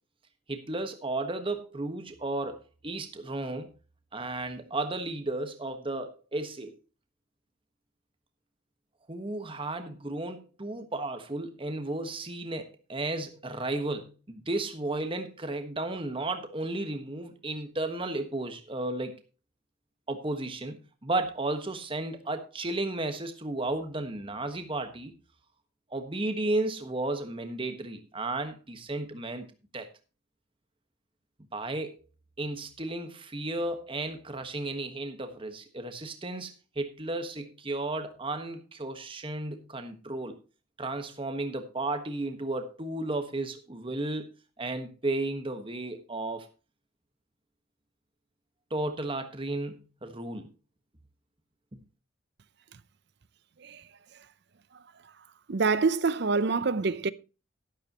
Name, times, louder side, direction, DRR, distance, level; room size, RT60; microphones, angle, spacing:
voice 1, 0.5-3.7 4.1-6.8 9.1-19.1 20.1-25.1 25.9-29.5 29.7-29.9 31.5-31.9 32.4-40.4 40.8-44.3 44.6-46.5 48.7-50.5, right 2 dB, 25° right, 1.3 m, -33 dB
voice 2, 55.5-57.1, right 4 dB, 55° right, 0.6 m, -26 dB
12.0 x 12.0 x 2.9 m
head